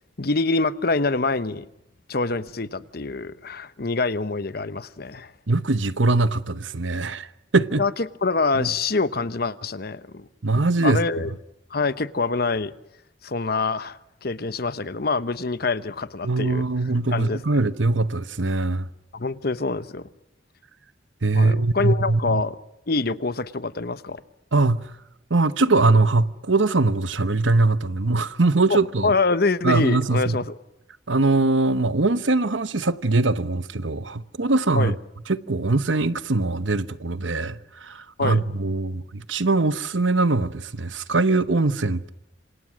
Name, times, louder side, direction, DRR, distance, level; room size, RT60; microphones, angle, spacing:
voice 1, 0.2-1.7 2.1-5.3 7.8-10.3 10.8-11.3 11.7-12.7 13.2-16.6 17.1-17.6 19.1-20.0 21.3-22.6 22.9-24.2 28.7-30.6 34.8-34.9 38.2-38.4, left 3 dB, 55° left, 1.0 m, -25 dB
voice 2, 5.5-7.3 7.5-7.8 8.6-8.7 10.4-11.0 16.2-18.9 21.2-22.4 24.5-24.8 25.3-29.1 29.6-30.4 31.1-34.9 35.3-42.1, right 3 dB, 85° right, 1.1 m, -22 dB
27.5 x 26.5 x 6.3 m
head